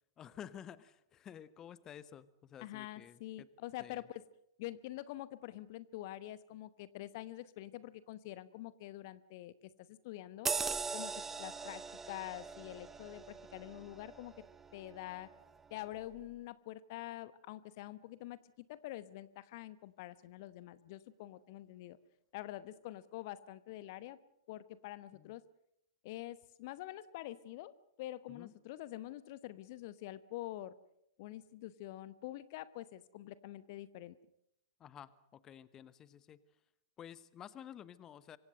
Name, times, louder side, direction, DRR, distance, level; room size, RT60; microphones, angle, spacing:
voice 1, 0.2-3.5 3.8-4.0 25.1-25.3 28.3-28.5 34.8-36.4 37.0-38.4, left 9 dB, 20° left, 17 dB, 1.0 m, -52 dB
voice 2, 2.6-4.2 4.6-9.5 9.8-10.5 10.9-11.1 11.4-14.3 14.7-15.3 15.7-22.0 22.3-24.2 24.5-25.4 26.0-30.7 31.2-34.2, left 15 dB, 40° left, 16 dB, 1.0 m, -46 dB
sound 1, 10.5-15.4 15.8-16.0, right 5 dB, 10° right, 1.1 m, -41 dB
26.5 x 24.0 x 6.6 m, 0.80 s
figure-of-eight pair, 105°, 2 cm